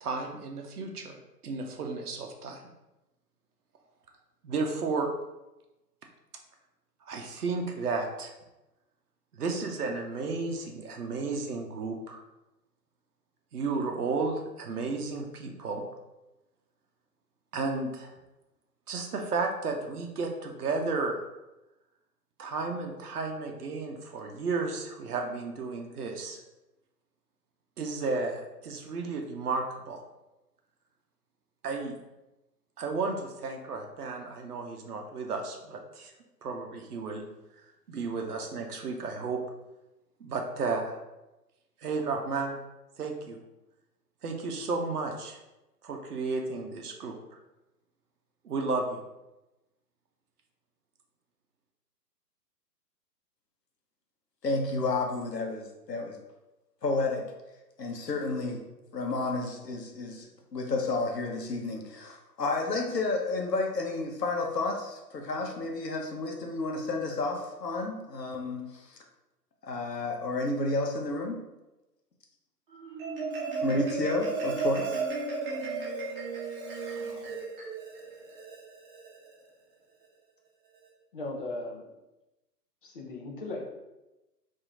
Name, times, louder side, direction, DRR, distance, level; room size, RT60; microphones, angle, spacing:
voice 1, 0.0-2.6 4.4-5.1 7.1-8.3 9.3-12.2 13.5-15.9 17.5-18.1 18.9-21.2 22.4-26.4 27.8-30.0 31.6-31.9 32.8-36.1 36.4-37.2 37.9-39.4 40.2-41.0 41.8-42.6 43.0-43.4 44.2-45.4 45.8-47.4 48.4-49.0, right 4 dB, 65° right, 2 dB, 0.7 m, -33 dB
voice 2, 54.4-56.2 56.8-57.3 57.8-58.6 58.9-60.3 60.5-69.0 69.6-71.4 73.6-75.0, left 3 dB, 75° left, 2 dB, 0.9 m, -31 dB
Marimba xylophone, 72.7-79.3, right 4 dB, 35° right, 0.9 m, -34 dB
voice 3, 81.1-81.9 82.8-83.6, left 2 dB, 35° left, -1 dB, 0.6 m, -37 dB
2.8 x 2.7 x 3.6 m, 1.0 s
figure-of-eight pair, 125°, 49 cm